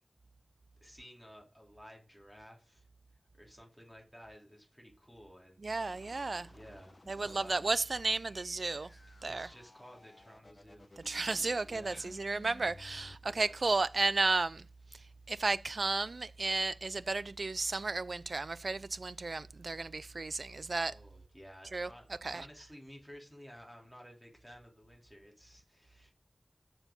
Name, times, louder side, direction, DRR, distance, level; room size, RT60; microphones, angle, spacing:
voice 1, 0.8-2.9 3.4-6.3 6.5-7.6 9.1-11.2 11.6-12.2 13.3-13.6 20.9-26.1, equal, ahead, 3.6 m, -54 dB
voice 2, 5.6-6.5 7.1-8.9 9.2-9.5 11.0-14.7 14.9-20.9 21.7-21.9 22.2-22.5, right 3 dB, 85° right, 0.3 m, -33 dB
sound 1, 5.8-13.2, left 2 dB, 50° left, 0.8 m, -57 dB
7.2 x 5.6 x 5.3 m
wide cardioid pair, 60°, 0 cm